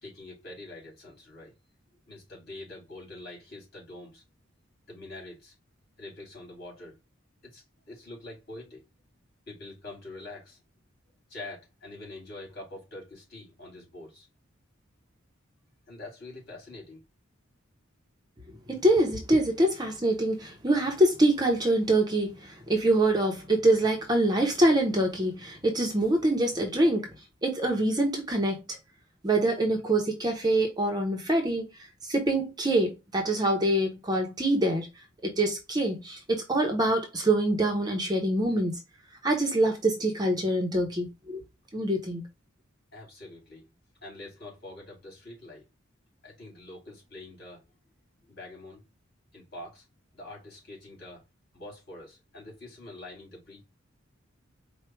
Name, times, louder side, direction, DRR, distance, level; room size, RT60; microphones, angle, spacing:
voice 1, 0.0-1.5 2.1-4.2 4.9-5.5 6.0-7.0 7.4-8.8 9.5-10.6 11.3-14.3 15.9-17.0 42.9-43.7 44.0-45.6 46.2-47.6 48.2-48.8 49.3-49.8 50.1-51.2 51.5-53.6, left 2 dB, 50° left, 3.2 m, -45 dB
voice 2, 18.7-27.1 27.4-28.6 29.2-31.7 32.0-34.9 35.2-38.8 39.2-41.4 41.7-42.2, right 1 dB, 20° right, 0.8 m, -25 dB
4.8 x 2.4 x 4.5 m
head